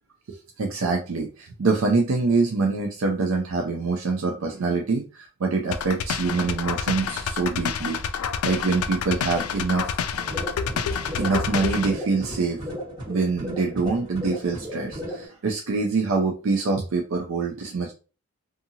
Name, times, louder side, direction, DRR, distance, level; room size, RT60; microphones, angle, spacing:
voice 1, 0.3-10.0 11.2-12.6 13.1-17.9, right 4 dB, 70° right, 2 dB, 0.4 m, -25 dB
sound 1, 5.7-11.9, left 7 dB, 85° left, 0.3 m, -28 dB
sound 2, 10.2-15.3, equal, 20° right, 1.4 m, -35 dB
2.7 x 2.4 x 2.7 m, 0.35 s
head